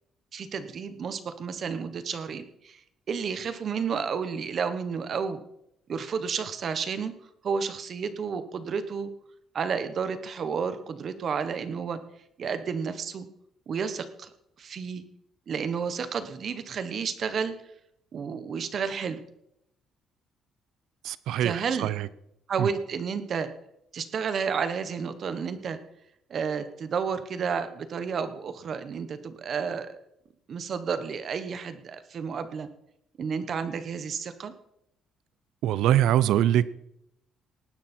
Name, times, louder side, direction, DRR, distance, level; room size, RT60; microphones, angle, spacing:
voice 1, 0.3-2.8 3.1-5.4 5.9-7.1 7.4-9.1 9.5-12.0 12.4-13.3 13.7-14.3 14.6-15.0 15.5-17.5 18.1-19.2 21.4-21.9 22.5-23.5 23.9-25.8 26.3-30.0 30.5-32.7 33.2-34.5, right 6 dB, 40° right, 1.2 m, -31 dB
voice 2, 21.0-22.1 22.6-22.7 35.6-36.6, right 11 dB, 80° right, 0.7 m, -23 dB
19.0 x 10.5 x 4.4 m
cardioid pair, 175°, 0 cm